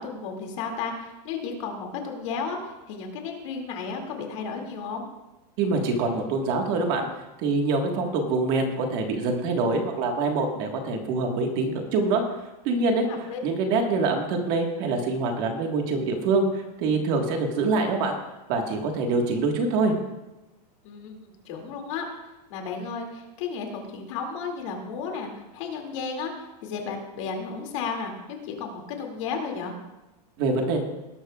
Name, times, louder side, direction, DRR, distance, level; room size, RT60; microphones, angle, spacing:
voice 1, 0.0-5.0 13.0-13.4 20.8-22.1 22.5-29.7, left 5 dB, 45° left, 2 dB, 2.4 m, -33 dB
voice 2, 5.6-7.1 7.4-12.2 12.6-13.0 13.4-18.1 18.5-19.9 30.4-30.8, right 3 dB, 35° right, 3 dB, 1.6 m, -25 dB
18.5 x 12.0 x 2.4 m, 1.0 s
supercardioid pair, 180°, 21 cm